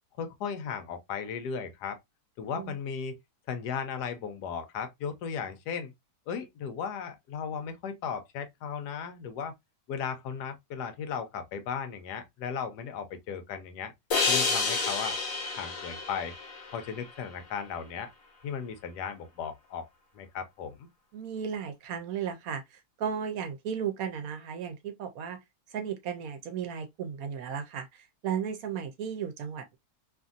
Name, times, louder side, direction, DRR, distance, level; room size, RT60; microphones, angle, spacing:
voice 1, 0.2-2.0 2.4-3.2 3.5-5.9 6.3-9.5 9.9-13.9 14.3-15.2 15.6-16.3 16.7-18.1 18.4-19.8 20.1-20.9, left 7 dB, 85° left, 1.2 m, -36 dB
sound 1, 14.1-17.4, left 4 dB, 60° left, 1.2 m, -30 dB
voice 2, 21.1-25.4 25.7-29.8, right 7 dB, 70° right, 1.0 m, -35 dB
2.9 x 2.6 x 2.3 m
omnidirectional pair, 1.7 m